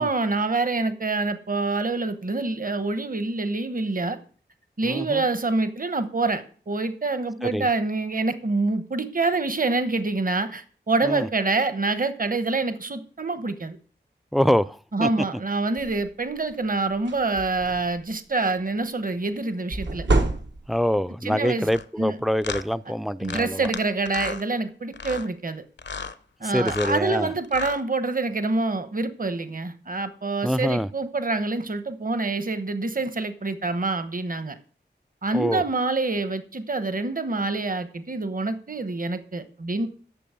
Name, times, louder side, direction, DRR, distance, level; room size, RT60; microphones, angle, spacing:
voice 1, 0.0-4.2 4.8-13.8 14.9-20.0 21.2-21.7 22.0-22.2 23.2-25.6 26.4-34.6 35.2-39.9, right 3 dB, 50° right, 1.0 m, -26 dB
voice 2, 4.8-5.2 7.4-7.7 11.0-11.3 14.3-15.1 20.7-23.7 26.4-27.3 30.4-30.9 35.3-35.6, equal, ahead, 0.4 m, -25 dB
sound 1, 15.8-16.1 16.5-16.7 16.9-18.0 19.7-20.9, right 2 dB, 80° right, 1.2 m, -26 dB
sound 2, 21.6-21.8 22.4-22.6 23.2-23.8 24.1-24.4 24.9-25.3 25.8-26.1 26.6-27.0 27.4-27.8, left 5 dB, 75° left, 0.7 m, -33 dB
8.6 x 7.0 x 6.8 m
wide cardioid pair, 80°, 18 cm